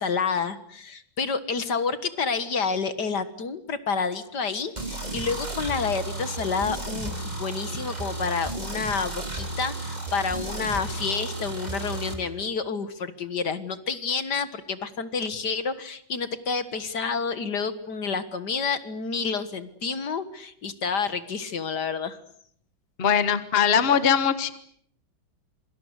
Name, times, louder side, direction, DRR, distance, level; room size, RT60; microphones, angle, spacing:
voice 1, 0.0-22.2, left 5 dB, 55° left, 12 dB, 2.1 m, -29 dB
sound 1, 4.8-12.1, right 2 dB, 20° right, 4.4 m, -33 dB
voice 2, 23.0-24.5, left 7 dB, 30° left, 12 dB, 1.5 m, -21 dB
27.0 x 24.5 x 8.2 m, 0.65 s
omnidirectional pair, 2.2 m